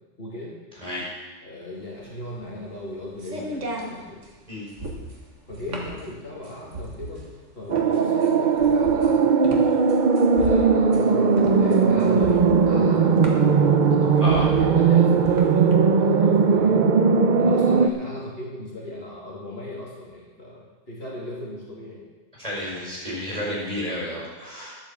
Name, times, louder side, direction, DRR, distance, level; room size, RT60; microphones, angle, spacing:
voice 1, 0.2-0.6 1.4-4.2 5.5-7.3 7.5-9.7 10.4-16.8 17.4-22.0, left 1 dB, 50° left, -4 dB, 2.8 m, -36 dB
voice 2, 0.8-1.1 4.5-4.7 14.2-14.4 22.4-24.8, left 1 dB, 30° right, -6 dB, 5.4 m, -31 dB
sound 1, 1.8-15.7, right 1 dB, 70° right, 2.1 m, -36 dB
sound 2, 7.7-17.9, right 5 dB, 50° right, 0.7 m, -18 dB
10.5 x 8.9 x 7.2 m, 1.2 s
omnidirectional pair, 1.3 m